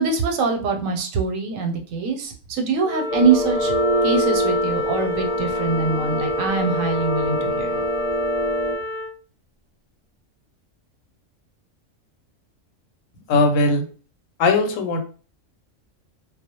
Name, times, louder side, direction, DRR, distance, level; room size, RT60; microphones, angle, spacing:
voice 1, 0.0-3.7 4.0-7.8, right 4 dB, 90° right, 4 dB, 1.0 m, -23 dB
Wind instrument woodwind instrument, 2.8-9.1, left 3 dB, 70° left, 0.4 m, -28 dB
sound 1, 3.1-8.8, right 1 dB, 15° left, 0.8 m, -25 dB
voice 2, 13.3-13.8 14.4-15.0, left 3 dB, 85° left, 6 dB, 1.0 m, -18 dB
2.2 x 2.0 x 2.8 m, 0.38 s
omnidirectional pair, 1.3 m